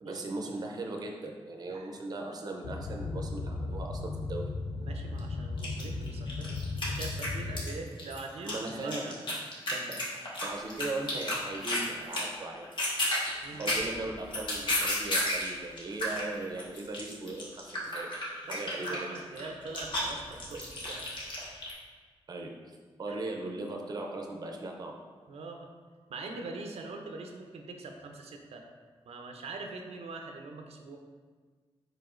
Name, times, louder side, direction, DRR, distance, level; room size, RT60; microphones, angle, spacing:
voice 1, 0.0-4.4 8.4-9.4 9.7-12.7 13.6-19.1 20.5-20.6 22.3-25.0, right 2 dB, 40° right, 1 dB, 0.5 m, -39 dB
Boat Water vehicle, 2.6-7.7, left 3 dB, 85° left, 0.4 m, -36 dB
voice 2, 4.8-9.2 13.0-13.1 13.4-14.1 18.5-21.1 23.1-23.2 25.3-25.7 26.1-28.6 29.0-31.0, right 3 dB, 90° right, 3 dB, 0.5 m, -43 dB
sound 1, 5.2-5.3 5.6-7.7 8.0-11.9 12.1-12.4 12.6-15.5 15.8-21.7, left 1 dB, 50° left, 1.1 m, -32 dB
4.8 x 4.5 x 2.5 m, 1.5 s
wide cardioid pair, 145°, 10 cm